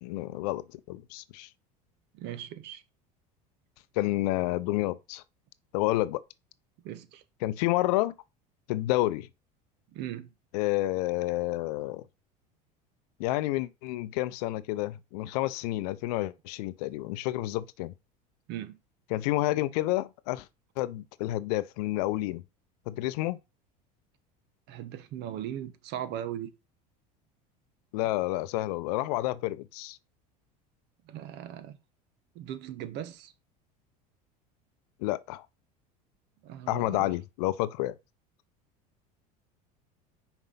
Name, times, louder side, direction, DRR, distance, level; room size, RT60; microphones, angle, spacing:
voice 1, 0.0-1.5 4.0-5.2 5.7-6.2 7.4-8.1 8.7-9.3 10.5-12.0 13.2-17.9 19.1-20.5 20.8-22.4 22.9-23.4 27.9-30.0 35.0-35.5 36.7-37.9, left 17 dB, 75° left, 0.6 m, -29 dB
voice 2, 2.1-2.8 6.8-7.2 9.9-10.3 18.5-18.8 24.7-26.5 31.1-31.8 32.3-33.3 36.4-37.1, right 11 dB, 60° right, 1.2 m, -38 dB
5.6 x 4.5 x 5.6 m
supercardioid pair, 95°, 20 cm